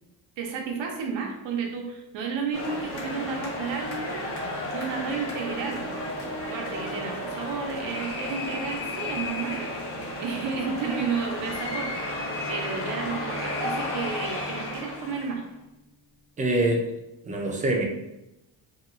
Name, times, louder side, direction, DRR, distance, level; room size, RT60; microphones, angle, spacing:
voice 1, 0.4-4.3 4.7-5.9 6.4-11.9 12.5-15.4, right 5 dB, 75° right, 2 dB, 0.7 m, -32 dB
sound 1, 2.5-15.5, left 1 dB, 30° left, 0.8 m, -33 dB
sound 2, 11.3-15.7, left 2 dB, 55° left, 1.2 m, -43 dB
voice 2, 16.4-16.8 17.2-17.8, right 1 dB, 20° right, 0 dB, 0.4 m, -24 dB
2.8 x 2.3 x 2.4 m, 0.91 s
cardioid pair, 115°, 46 cm